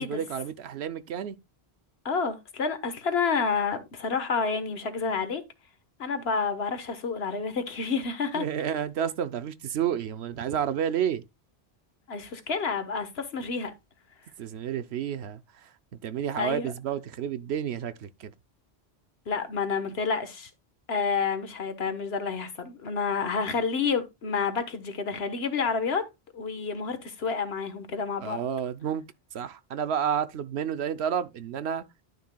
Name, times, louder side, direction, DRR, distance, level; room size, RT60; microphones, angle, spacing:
voice 1, 0.0-1.4 8.3-11.2 14.4-15.7 16.0-18.3 28.2-29.0 29.3-31.8, right 8 dB, 75° right, 0.9 m, -30 dB
voice 2, 2.0-5.4 6.0-8.5 12.1-13.7 16.3-16.7 19.3-20.5 20.9-26.1 26.3-28.4, left 5 dB, 70° left, 1.5 m, -29 dB
11.5 x 6.5 x 2.2 m
omnidirectional pair, 1.1 m